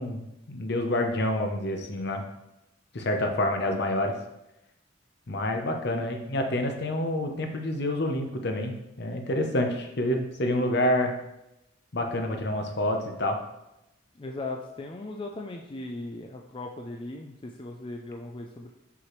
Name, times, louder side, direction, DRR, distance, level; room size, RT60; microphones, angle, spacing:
voice 1, 0.0-2.2 2.9-4.1 5.3-11.2 11.9-13.4, left 1 dB, 55° left, 4 dB, 0.8 m, -28 dB
voice 2, 14.2-18.7, left 2 dB, 25° left, 2 dB, 0.4 m, -38 dB
5.9 x 5.8 x 3.1 m, 0.91 s
head